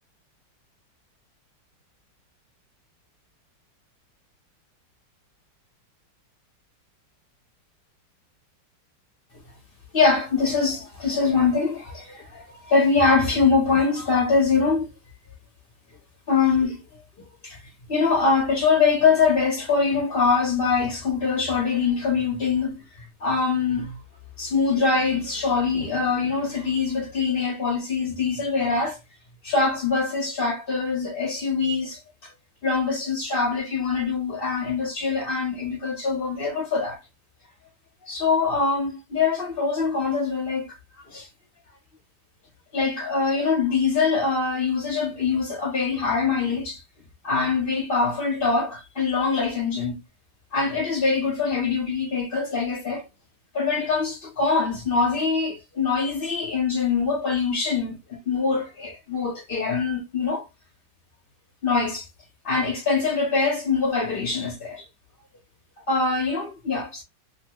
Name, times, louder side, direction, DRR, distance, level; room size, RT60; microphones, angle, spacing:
voice 1, 9.9-14.9 16.3-16.8 17.4-17.6 17.9-22.8 23.2-24.0 24.4-29.0 29.4-32.0 32.6-37.0 38.0-41.3 42.7-46.8 47.2-50.0 50.5-53.0 53.5-60.4 61.6-62.1 62.4-64.8 65.9-67.0, left 4 dB, 45° left, 0.8 m, -23 dB
2.9 x 2.8 x 2.8 m
omnidirectional pair, 2.0 m